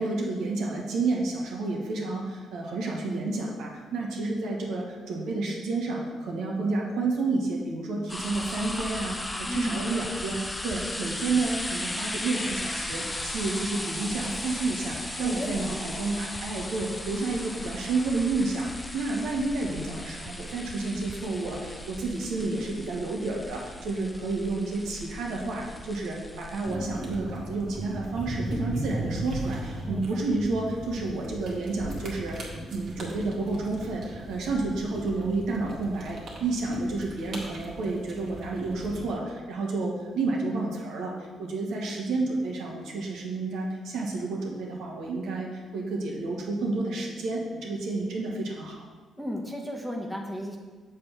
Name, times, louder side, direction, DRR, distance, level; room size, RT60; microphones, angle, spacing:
voice 1, 0.0-18.7 18.9-32.4 32.7-48.8, right 3 dB, 80° right, -1 dB, 1.5 m, -30 dB
sound 1, 8.1-26.8, left 1 dB, 15° left, 0.6 m, -36 dB
voice 2, 9.5-9.9 15.2-15.8 29.9-30.0 49.2-50.6, left 1 dB, 5° right, 0 dB, 1.2 m, -34 dB
sound 2, 26.6-39.1, right 2 dB, 60° right, 1.8 m, -37 dB
7.4 x 3.5 x 6.0 m, 1.4 s
cardioid pair, 90°, 0 cm